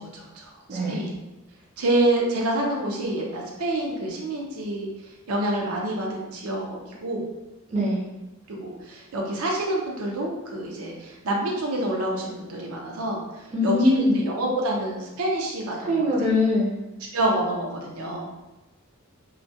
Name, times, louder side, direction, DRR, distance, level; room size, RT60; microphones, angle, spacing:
voice 1, 0.1-1.1 1.8-4.9 5.3-7.2 8.5-13.2 13.6-16.3 17.1-18.3, right 1 dB, 90° right, -2 dB, 0.5 m, -27 dB
voice 2, 0.7-1.0 7.7-8.0 13.5-14.2 15.9-16.7, left 2 dB, 35° right, -4 dB, 0.5 m, -22 dB
2.3 x 2.1 x 2.6 m, 1.0 s
head